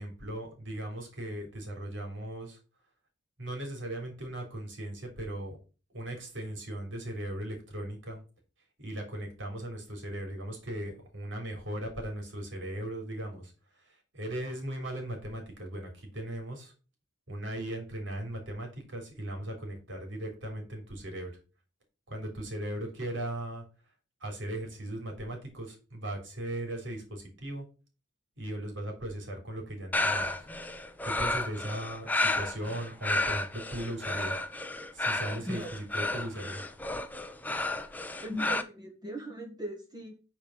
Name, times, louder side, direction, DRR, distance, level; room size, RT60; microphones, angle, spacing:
voice 1, 0.0-2.6 3.4-5.6 5.9-8.2 8.8-16.7 17.3-21.3 22.1-23.6 24.2-27.7 28.4-30.5 31.0-34.4 34.9-36.6, right 1 dB, 65° right, 2 dB, 3.6 m, -38 dB
sound 1, 29.9-38.6, left 2 dB, 10° left, 0.6 m, -32 dB
voice 2, 35.4-35.8 38.2-40.1, equal, 20° right, 1 dB, 1.5 m, -38 dB
9.3 x 4.7 x 5.7 m, 0.34 s
head